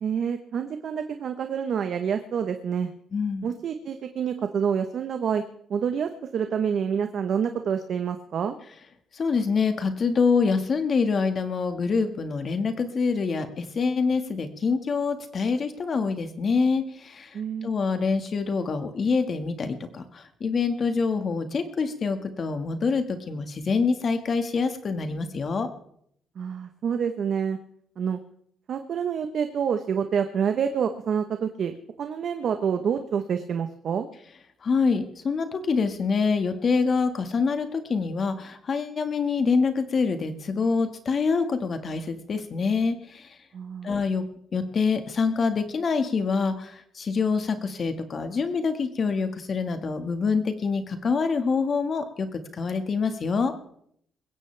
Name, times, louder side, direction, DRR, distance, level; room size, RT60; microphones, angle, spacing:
voice 1, 0.0-2.9 3.4-5.4 5.7-8.5 17.3-17.7 26.4-27.6 28.0-28.2 28.7-31.7 32.0-34.1 43.5-43.9, right 7 dB, 60° right, 7 dB, 1.0 m, -27 dB
voice 2, 3.1-3.5 9.2-25.7 34.6-43.3 43.8-44.2 44.5-53.5, left 5 dB, 45° left, 8 dB, 1.7 m, -26 dB
21.0 x 16.0 x 3.4 m, 0.68 s
cardioid pair, 90°, 0 cm